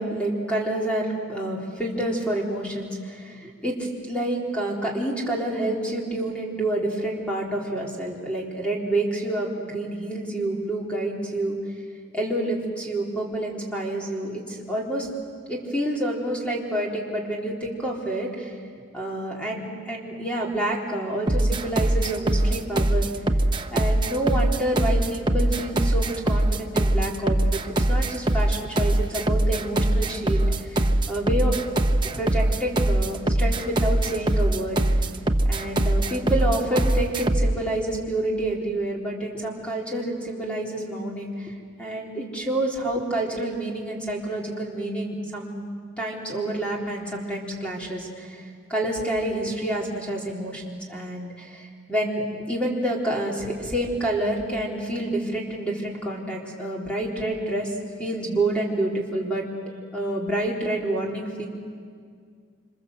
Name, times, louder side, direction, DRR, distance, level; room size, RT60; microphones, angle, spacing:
voice 1, 0.0-11.6 12.1-15.1 15.5-18.5 18.9-23.1 23.7-31.6 32.1-34.8 35.4-45.6 46.0-48.4 48.7-59.4 59.9-61.5, right 1 dB, 5° left, -3 dB, 3.8 m, -28 dB
sound 1, 21.3-37.6, right 1 dB, 25° right, 0.9 m, -22 dB
27.0 x 26.0 x 7.9 m, 2.1 s
head